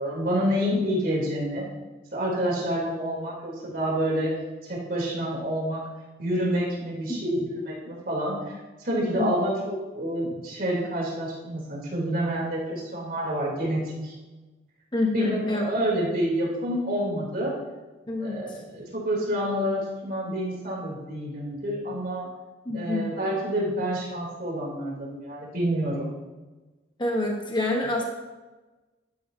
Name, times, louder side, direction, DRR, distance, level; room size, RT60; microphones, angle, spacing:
voice 1, 0.0-1.7 2.1-4.3 4.7-5.8 6.2-14.1 15.1-17.5 18.2-22.3 22.7-26.1, equal, 50° right, -4 dB, 3.3 m, -28 dB
voice 2, 8.9-9.3 14.9-15.6 18.1-18.4 22.6-23.1 27.0-28.0, left 2 dB, 25° left, 0 dB, 1.1 m, -27 dB
12.0 x 10.0 x 2.8 m, 1.2 s
head